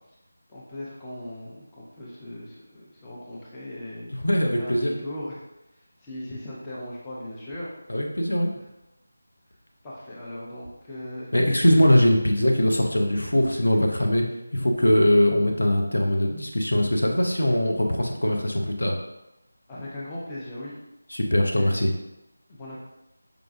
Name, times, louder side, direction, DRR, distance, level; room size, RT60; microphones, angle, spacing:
voice 1, 0.5-4.1 4.5-5.4 6.0-7.7 9.8-11.3 19.7-20.7 21.5-21.7 22.5-22.8, left 1 dB, 15° left, -7 dB, 0.5 m, -38 dB
voice 2, 4.2-4.9 7.9-8.5 11.3-14.3 14.5-19.0 21.1-21.9, left 1 dB, 70° left, 1 dB, 0.6 m, -21 dB
4.8 x 2.3 x 2.4 m, 0.89 s
figure-of-eight pair, 165°, 0 cm